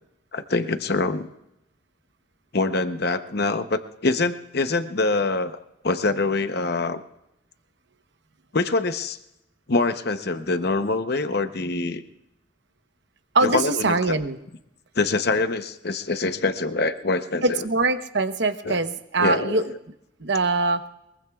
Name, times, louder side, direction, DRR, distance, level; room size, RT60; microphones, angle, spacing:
voice 1, 0.3-1.3 2.5-5.6 5.8-7.0 8.5-9.2 9.7-12.0 13.4-14.2 14.9-17.6 18.6-18.8 19.2-19.7, left 3 dB, 55° left, 9 dB, 0.8 m, -24 dB
voice 2, 13.3-14.4 17.4-19.6 20.2-20.8, right 3 dB, 60° right, 8 dB, 1.0 m, -23 dB
23.0 x 22.0 x 2.4 m, 0.86 s
head